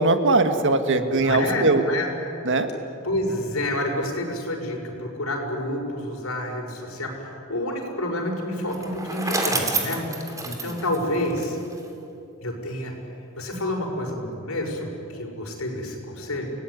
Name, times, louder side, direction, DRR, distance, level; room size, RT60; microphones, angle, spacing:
voice 1, 0.0-1.8 2.4-2.7 10.5-10.8, right 2 dB, 60° right, 8 dB, 1.8 m, -21 dB
voice 2, 1.2-2.1 3.0-7.1 7.5-10.0 10.4-11.6 12.4-12.9 13.4-16.5, left 1 dB, 70° left, 1 dB, 5.8 m, -28 dB
Bicycle, 8.7-11.9, right 3 dB, 15° right, 3.3 m, -28 dB
29.5 x 18.5 x 9.7 m, 2.8 s
head